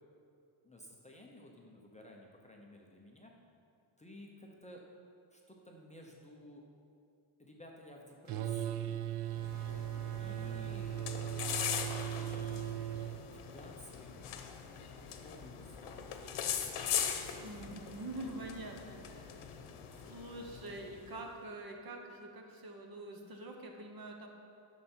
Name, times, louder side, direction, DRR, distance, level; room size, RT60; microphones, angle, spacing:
voice 1, 0.6-3.3 4.0-4.8 5.3-6.6 7.4-9.0 10.2-12.9 13.2-14.2 15.2-17.4 18.2-18.3 18.6-19.1, left 1 dB, 15° left, -1 dB, 0.7 m, -55 dB
sound 1, 8.3-13.2, right 12 dB, 80° right, 0.6 m, -38 dB
sound 2, 9.3-21.1, left 8 dB, 80° left, 0.9 m, -41 dB
voice 2, 17.4-19.3 20.0-24.3, right 2 dB, 45° right, 3 dB, 1.0 m, -45 dB
11.0 x 6.6 x 4.4 m, 2.5 s
wide cardioid pair, 170°, 50 cm